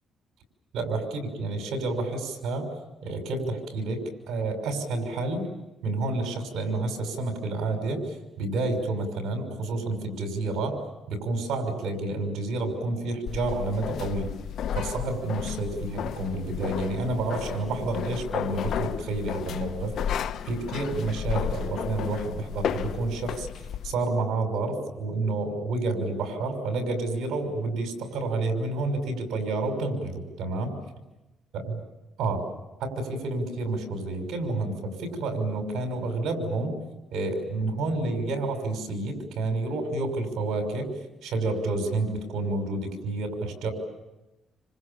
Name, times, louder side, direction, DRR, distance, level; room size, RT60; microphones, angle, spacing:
voice 1, 0.7-2.7 3.0-5.5 5.8-8.1 8.4-10.8 11.1-14.3 14.7-20.0 20.4-23.5 23.8-30.8 31.5-31.8 32.2-32.4 32.8-36.8 37.1-40.9 41.2-43.7, right 2 dB, 80° right, 6 dB, 6.1 m, -29 dB
sound 1, 13.3-23.9, left 9 dB, 70° left, 0.9 m, -33 dB
28.5 x 26.5 x 7.2 m, 1.0 s
cardioid pair, 90°, 0 cm